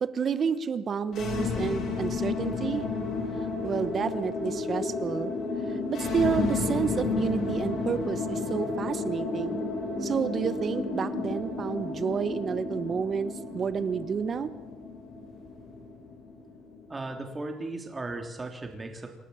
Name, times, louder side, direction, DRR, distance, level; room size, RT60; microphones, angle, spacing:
voice 1, 0.0-2.9 3.6-5.3 5.7-9.6 10.0-14.5, right 6 dB, 35° right, 13 dB, 1.2 m, -30 dB
sound 1, 1.1-17.1, left 3 dB, 60° left, 6.8 m, -32 dB
voice 2, 16.9-19.1, right 2 dB, 15° right, 4 dB, 3.5 m, -36 dB
28.0 x 12.5 x 8.9 m, 1.2 s
cardioid pair, 145°, 0 cm